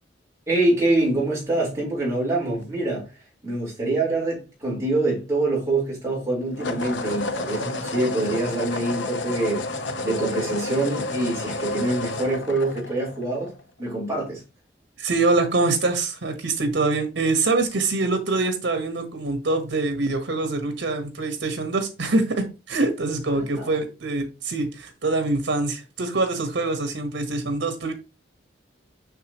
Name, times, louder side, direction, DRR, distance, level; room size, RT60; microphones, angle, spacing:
voice 1, 0.5-3.1 3.4-9.7 10.0-13.5 13.8-14.4 23.3-23.7, right 2 dB, 15° right, 4.3 m, -25 dB
sound 1, 2.4-2.6 6.5-13.6, left 2 dB, 90° left, 0.9 m, -30 dB
voice 2, 15.0-27.9, right 3 dB, 85° right, 1.3 m, -24 dB
6.7 x 6.0 x 3.0 m
head